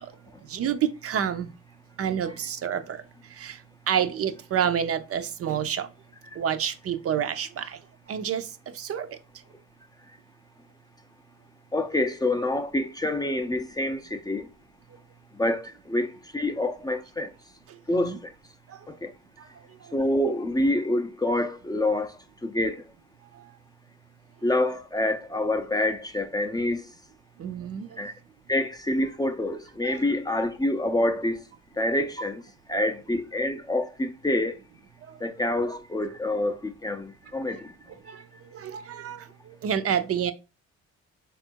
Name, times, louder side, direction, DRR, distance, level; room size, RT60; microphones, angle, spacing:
voice 1, 0.5-1.5 2.0-3.0 3.3-3.6 3.9-5.9 6.3-7.8 8.1-9.2 17.9-18.2 18.7-19.0 19.4-19.5 23.3-23.5 27.4-28.0 29.8-30.0 32.7-32.9 35.0-35.2 38.1-40.3, right 8 dB, 50° right, 0.5 m, -29 dB
voice 2, 11.7-14.5 15.4-17.3 17.9-18.2 18.9-19.1 19.9-22.8 24.4-26.8 28.0-28.1 28.5-31.4 31.8-32.4 32.7-34.6 35.2-37.7, left 1 dB, 15° left, 0.5 m, -27 dB
3.5 x 2.4 x 4.4 m
cardioid pair, 90°, 30 cm